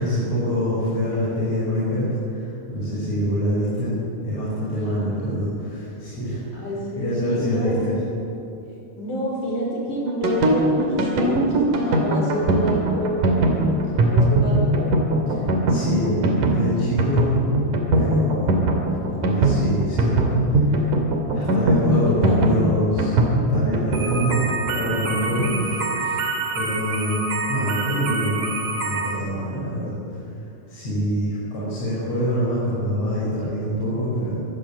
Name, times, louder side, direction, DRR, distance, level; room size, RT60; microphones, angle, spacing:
voice 1, 0.0-3.9 4.2-6.4 7.0-7.9 15.3-15.4 15.7-17.4 17.9-18.5 19.1-20.3 20.7-20.9 21.3-23.1 23.5-24.5 24.7-25.4 26.0-26.2 26.5-27.2 27.5-28.5 28.8-29.9 30.7-34.5, equal, 50° left, -8 dB, 7.0 m, -25 dB
voice 2, 6.5-8.0 9.0-15.0 21.9-22.6 25.3-25.7, equal, 65° left, -2 dB, 6.7 m, -28 dB
sound 1, 10.1-29.1, right 2 dB, 65° right, 4.0 m, -21 dB
24.5 x 15.5 x 8.7 m, 2.8 s
omnidirectional pair, 3.9 m